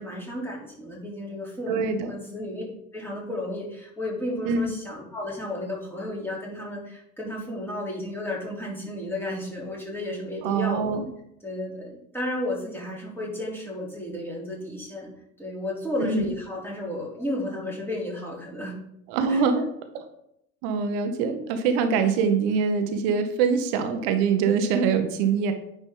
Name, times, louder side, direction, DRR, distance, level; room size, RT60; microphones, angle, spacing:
voice 1, 0.0-1.8 2.1-2.6 2.9-10.9 11.4-15.1 15.4-18.7 19.3-19.4, left 1 dB, 5° left, -4 dB, 3.4 m, -33 dB
voice 2, 1.7-2.1 4.4-4.6 10.4-11.1 16.0-16.3 19.1-19.6 19.9-20.0 20.6-25.5, right 6 dB, 55° right, 8 dB, 1.2 m, -24 dB
9.7 x 5.3 x 3.9 m, 0.76 s
figure-of-eight pair, 65°, 46 cm